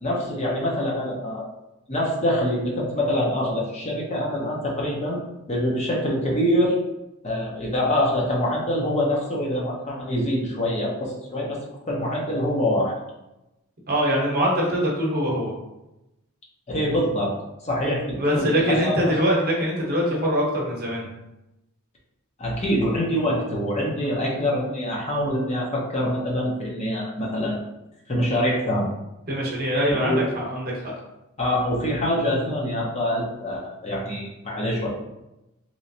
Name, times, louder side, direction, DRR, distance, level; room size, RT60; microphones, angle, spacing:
voice 1, 0.0-1.4 1.9-5.2 5.5-6.8 7.2-11.6 11.9-12.9 16.7-17.3 17.6-19.1 22.4-27.6 28.1-28.9 29.9-30.2 31.4-34.9, left 1 dB, 30° left, -3 dB, 0.7 m, -25 dB
voice 2, 13.9-15.5 18.2-21.1 29.3-30.8, equal, 45° right, -3 dB, 0.9 m, -23 dB
3.1 x 3.0 x 2.7 m, 0.93 s
head